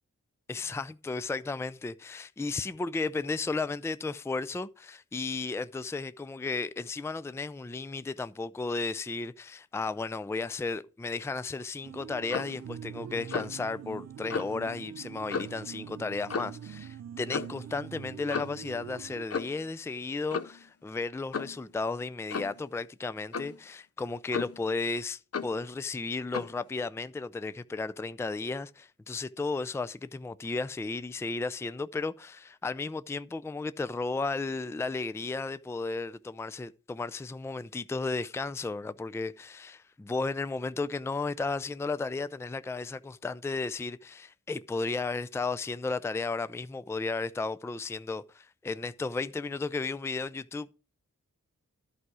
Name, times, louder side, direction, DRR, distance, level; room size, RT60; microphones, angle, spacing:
voice 1, 0.5-50.7, left 3 dB, 10° left, 0.4 m, -34 dB
sound 1, 11.8-19.3, right 9 dB, 55° right, 0.4 m, -44 dB
Clock, 12.3-12.6 13.3-13.6 14.3-14.5 15.3-15.6 16.3-16.6 17.3-17.6 18.3-18.6 19.3-19.6 20.3-20.6 21.3-21.6 22.3-22.6 23.3-23.6 24.3-24.7 25.3-25.6 26.3-26.6, left 5 dB, 45° left, 0.6 m, -34 dB
11.0 x 4.8 x 6.2 m
cardioid pair, 40°, 33 cm